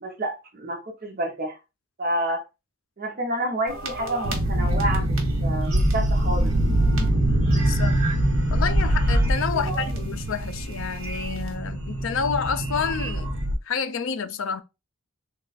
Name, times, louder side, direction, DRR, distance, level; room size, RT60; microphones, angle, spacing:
voice 1, 0.0-1.6 2.0-2.4 3.0-6.5 9.6-9.9, right 1 dB, 40° right, 0.7 m, -29 dB
sound 1, 3.7-13.5, right 1 dB, 70° right, 1.1 m, -23 dB
voice 2, 7.4-8.0 8.5-13.3 13.6-14.6, left 6 dB, 65° left, 0.4 m, -29 dB
3.2 x 2.3 x 3.9 m
head